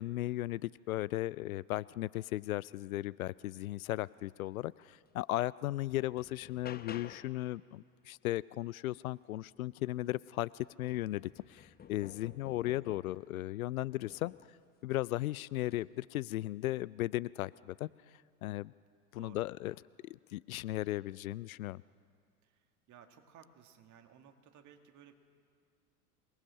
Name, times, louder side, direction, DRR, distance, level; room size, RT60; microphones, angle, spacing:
voice 1, 0.0-14.3 14.8-17.9 18.4-18.7 19.1-19.8 20.0-21.8, left 16 dB, 65° left, 21 dB, 0.5 m, -36 dB
sound 1, 5.1-5.2 5.6-7.4 9.8-9.9 10.3-13.3 14.0-14.6 15.6-15.9, left 8 dB, 20° left, 0.9 m, -52 dB
voice 2, 22.9-25.1, right 8 dB, 40° right, 6 dB, 2.3 m, -58 dB
26.5 x 19.5 x 6.4 m, 2.1 s
figure-of-eight pair, 75°, 45 cm